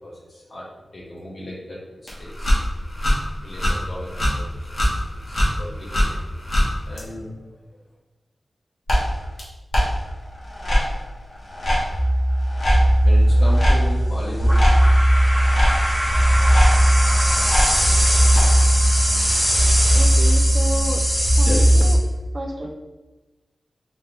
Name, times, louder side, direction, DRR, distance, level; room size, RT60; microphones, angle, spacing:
voice 1, 0.0-2.6 3.4-6.2 6.8-7.5 12.7-14.6 21.4-21.9, left 1 dB, 55° left, -6 dB, 0.9 m, -35 dB
sound 1, 2.1-7.0 8.9-9.4 9.7-17.8 18.3-18.8, equal, 75° left, 1.2 m, -23 dB
sound 2, 11.9-22.0, equal, ahead, 0.7 m, -17 dB
voice 2, 19.9-21.1 21.4-22.7, right 1 dB, 40° right, 3 dB, 0.4 m, -31 dB
4.2 x 2.8 x 3.3 m, 1.1 s
wide cardioid pair, 125°, 0 cm